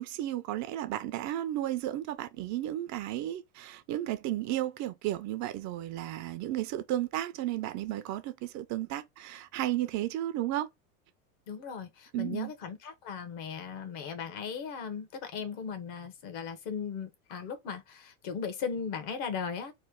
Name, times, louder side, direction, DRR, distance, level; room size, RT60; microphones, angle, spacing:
voice 1, 0.0-10.7 12.1-12.5, right 13 dB, 40° right, 0.5 m, -33 dB
voice 2, 11.5-19.7, left 6 dB, 55° left, 1.1 m, -37 dB
3.2 x 2.2 x 3.6 m
hypercardioid pair, 105°, 43 cm